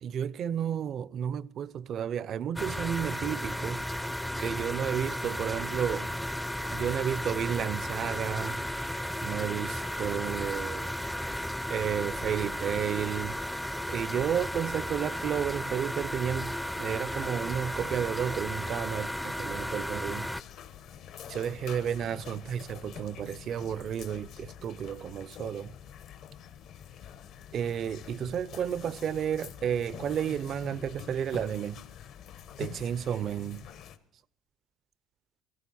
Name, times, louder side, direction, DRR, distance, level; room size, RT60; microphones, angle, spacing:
voice 1, 0.0-3.8 4.4-6.1 6.7-8.6 9.2-10.9 11.7-13.4 13.9-20.3 21.3-25.7 27.5-31.8 32.6-33.7, right 9 dB, 50° right, 0.5 m, -32 dB
sound 1, 2.6-20.4, equal, 5° left, 0.5 m, -34 dB
sound 2, 20.3-34.0, left 9 dB, 65° left, 1.1 m, -46 dB
17.5 x 15.5 x 4.2 m
cardioid pair, 130°, 0 cm